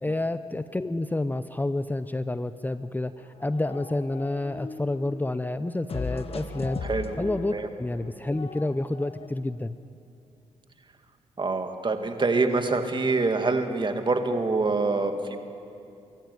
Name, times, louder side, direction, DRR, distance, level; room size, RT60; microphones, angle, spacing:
voice 1, 0.0-6.8 7.2-9.8, left 2 dB, 15° left, 12 dB, 0.7 m, -29 dB
sound 1, 3.2-5.3 5.9-9.3, left 4 dB, 50° left, 1.3 m, -38 dB
voice 2, 6.8-7.2 7.5-7.7 11.4-15.4, right 3 dB, 40° right, 6 dB, 2.2 m, -25 dB
24.0 x 14.0 x 9.6 m, 2.6 s
supercardioid pair, 55°, 13 cm